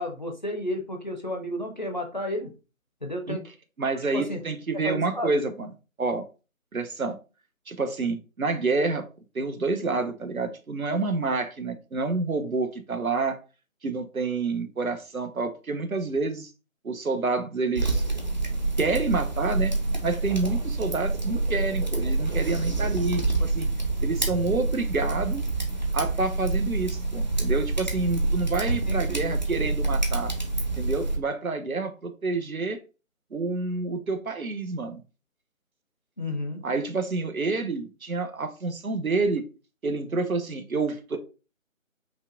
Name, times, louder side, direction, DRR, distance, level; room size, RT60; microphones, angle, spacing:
voice 1, 0.0-2.5 3.0-3.4 4.1-4.4 4.7-5.3 28.9-29.0 36.2-36.6, left 1 dB, 35° left, 3 dB, 0.6 m, -32 dB
voice 2, 3.8-5.7 6.0-6.2 6.7-7.2 7.7-9.0 9.3-13.4 13.8-16.5 16.8-18.0 18.8-19.7 20.0-23.7 24.0-25.4 25.9-30.3 30.8-32.8 33.3-35.0 36.6-39.4 39.8-41.2, right 3 dB, 85° right, 9 dB, 1.0 m, -28 dB
sound 1, 17.8-31.2, right 2 dB, 35° right, 0.6 m, -27 dB
5.4 x 2.4 x 3.8 m, 0.33 s
figure-of-eight pair, 160°, 41 cm